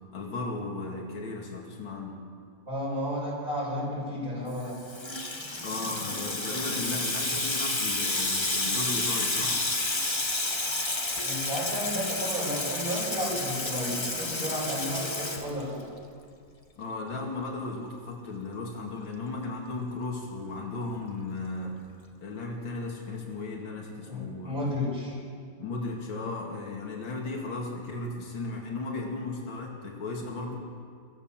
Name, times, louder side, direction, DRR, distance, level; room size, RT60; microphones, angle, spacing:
voice 1, 0.1-2.2 5.6-9.6 16.8-21.8 22.2-24.7 25.6-30.6, left 3 dB, 85° left, -1 dB, 3.2 m, -35 dB
voice 2, 2.7-4.8 11.2-15.8 24.1-25.1, equal, 45° right, -5 dB, 7.2 m, -32 dB
Water tap faucet / Sink (filling or washing), 4.6-16.0, left 2 dB, 15° left, 1.2 m, -30 dB
23.0 x 15.0 x 7.5 m, 2.2 s
omnidirectional pair, 2.0 m